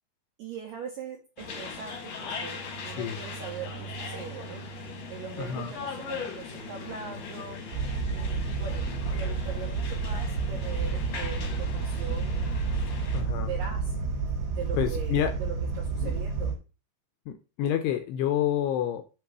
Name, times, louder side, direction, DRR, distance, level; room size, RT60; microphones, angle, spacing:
voice 1, 0.4-4.6 5.1-7.7 8.1-12.7 13.4-13.9 14.5-16.6, right 6 dB, 75° right, 1 dB, 2.0 m, -41 dB
sound 1, 1.4-13.2, left 3 dB, 65° left, 1.7 m, -39 dB
voice 2, 5.4-5.7 13.1-13.5 14.8-15.3 16.0-16.1 17.3-19.0, left 10 dB, 80° left, 7 dB, 2.4 m, -28 dB
sound 2, 7.7-16.5, right 4 dB, 55° right, 3.4 m, -30 dB
7.6 x 3.0 x 6.0 m, 0.31 s
omnidirectional pair, 5.3 m